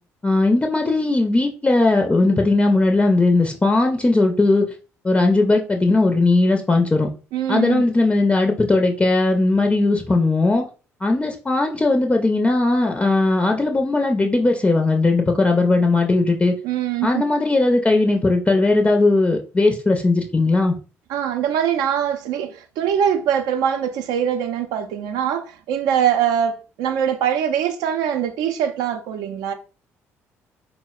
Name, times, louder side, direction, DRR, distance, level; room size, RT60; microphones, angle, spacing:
voice 1, 0.2-4.7 5.0-7.1 7.5-10.7 11.0-16.5 17.0-20.8, left 2 dB, 15° left, 0.5 m, -18 dB
voice 2, 7.3-7.8 16.6-17.2 21.1-29.5, right 9 dB, 70° right, 0.4 m, -22 dB
3.9 x 2.0 x 2.3 m
hypercardioid pair, 50°, 7 cm